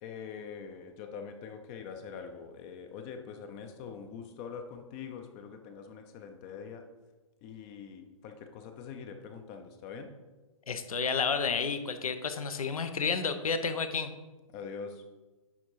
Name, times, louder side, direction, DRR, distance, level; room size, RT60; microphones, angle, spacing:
voice 1, 0.0-6.8 7.4-10.1 14.5-15.0, left 6 dB, 25° left, 6 dB, 0.5 m, -44 dB
voice 2, 10.7-14.1, left 5 dB, 85° left, 9 dB, 0.9 m, -31 dB
10.0 x 3.8 x 4.7 m, 1.2 s
hypercardioid pair, 150°, 18 cm